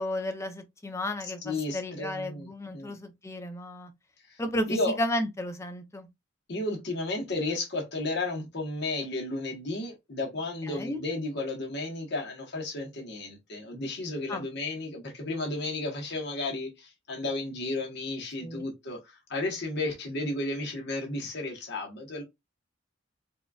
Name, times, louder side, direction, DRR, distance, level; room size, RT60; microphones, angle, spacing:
voice 1, 0.0-3.9 4.4-6.1 10.6-11.0 14.3-14.4 18.4-18.6, left 1 dB, 15° left, 0.5 m, -33 dB
voice 2, 1.4-2.9 4.3-4.4 4.7-5.0 6.5-22.2, left 2 dB, 55° left, 1.2 m, -33 dB
4.1 x 2.4 x 2.4 m
head